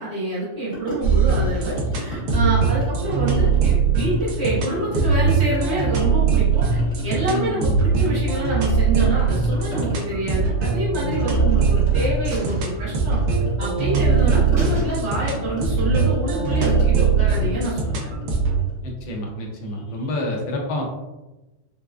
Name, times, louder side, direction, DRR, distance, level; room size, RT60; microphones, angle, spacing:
voice 1, 0.0-13.2 13.6-18.1, right 2 dB, 45° right, -7 dB, 0.8 m, -27 dB
sound 1, 0.7-2.4 2.7-3.8 4.1-6.0 6.3-8.7 9.0-18.8, equal, 40° left, 1.3 m, -36 dB
sound 2, 1.0-18.6, right 5 dB, 85° right, 0.8 m, -21 dB
voice 2, 7.3-7.8 18.8-20.8, left 1 dB, 70° left, -1 dB, 1.3 m, -28 dB
sound 3, 11.2-11.9 12.2-13.5 13.9-14.0 14.3-14.4 14.6-15.5 15.8-15.9, right 1 dB, 65° right, 1.6 m, -36 dB
4.8 x 2.1 x 2.3 m, 1.1 s
omnidirectional pair, 2.4 m